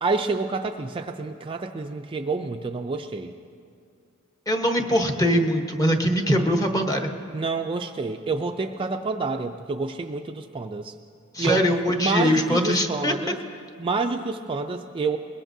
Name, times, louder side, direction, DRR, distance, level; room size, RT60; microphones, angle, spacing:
voice 1, 0.0-3.3 7.3-10.9 11.4-11.6 12.0-13.4 13.8-15.2, right 4 dB, 25° right, 4 dB, 0.4 m, -28 dB
voice 2, 4.5-7.1 11.3-13.1, equal, 15° left, 3 dB, 1.1 m, -22 dB
21.5 x 20.5 x 2.7 m, 2.3 s
head